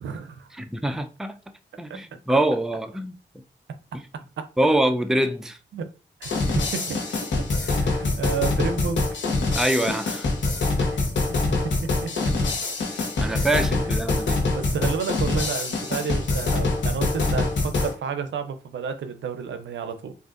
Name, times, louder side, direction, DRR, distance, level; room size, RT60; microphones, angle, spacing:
voice 1, 0.0-0.5 1.9-2.0 4.1-4.5 5.7-5.9 6.2-7.0 7.6-9.1 10.8-11.0 11.3-12.3 13.2-14.0 14.5-20.1, right 6 dB, 80° right, 0.5 m, -31 dB
voice 2, 0.5-1.4 1.8-3.1 4.6-5.6 9.6-10.3 13.2-14.4, right 1 dB, ahead, 0.4 m, -24 dB
sound 1, 6.2-17.9, left 3 dB, 80° left, 1.0 m, -25 dB
3.6 x 2.5 x 2.4 m
cardioid pair, 50°, 19 cm